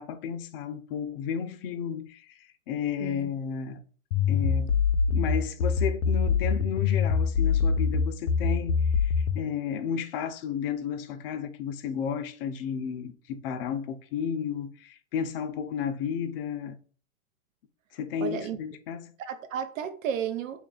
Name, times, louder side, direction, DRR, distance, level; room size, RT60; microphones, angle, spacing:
voice 1, 0.0-3.8 4.3-4.8 5.1-16.8 17.9-19.1, left 7 dB, 45° left, 0.5 m, -33 dB
sound 1, 4.1-9.5, left 6 dB, 90° left, 0.6 m, -24 dB
voice 2, 18.2-18.6 19.2-20.7, right 8 dB, 65° right, 0.7 m, -33 dB
3.2 x 2.5 x 3.7 m
hypercardioid pair, 130°, 42 cm